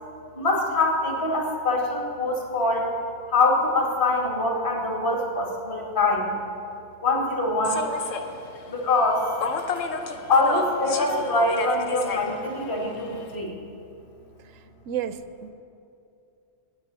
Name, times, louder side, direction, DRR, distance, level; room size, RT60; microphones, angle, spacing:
voice 1, 0.4-2.9 3.3-6.3 7.0-7.9 8.7-9.2 10.3-13.5, left 2 dB, 45° left, -1 dB, 2.2 m, -24 dB
Human voice / Subway metro underground, 7.6-13.4, left 5 dB, 85° left, 1.2 m, -33 dB
voice 2, 14.9-15.5, right 9 dB, 90° right, 12 dB, 1.0 m, -31 dB
9.6 x 8.7 x 8.7 m, 2.6 s
omnidirectional pair, 1.3 m